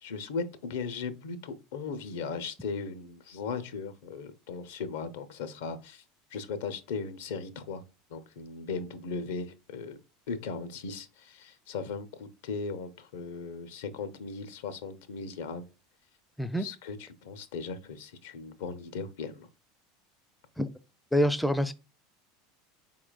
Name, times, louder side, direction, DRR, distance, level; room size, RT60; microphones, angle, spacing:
voice 1, 0.0-6.0 6.3-7.8 8.1-10.0 10.3-15.6 16.5-19.5, left 5 dB, 65° left, 0.5 m, -37 dB
voice 2, 21.1-21.7, equal, 5° left, 0.4 m, -26 dB
4.4 x 3.7 x 2.2 m
figure-of-eight pair, 75°, 0 cm